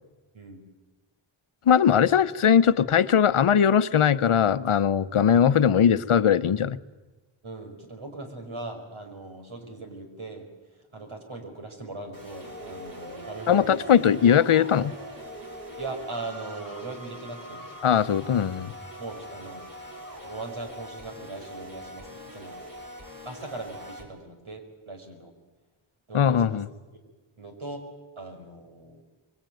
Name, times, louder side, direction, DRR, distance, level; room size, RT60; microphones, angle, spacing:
voice 1, 1.7-6.8 13.5-14.9 17.8-18.7 26.1-26.7, left 8 dB, 80° left, 14 dB, 0.9 m, -20 dB
voice 2, 7.4-10.5 10.8-13.8 15.8-17.7 19.0-19.7 20.2-22.6 23.3-25.3 26.1-26.6 27.4-27.8 28.2-29.0, right 2 dB, 75° right, 4 dB, 5.4 m, -39 dB
sound 1, 12.1-24.0, equal, 40° right, 6.4 m, -42 dB
25.5 x 22.0 x 9.2 m, 1.2 s
wide cardioid pair, 65°, 49 cm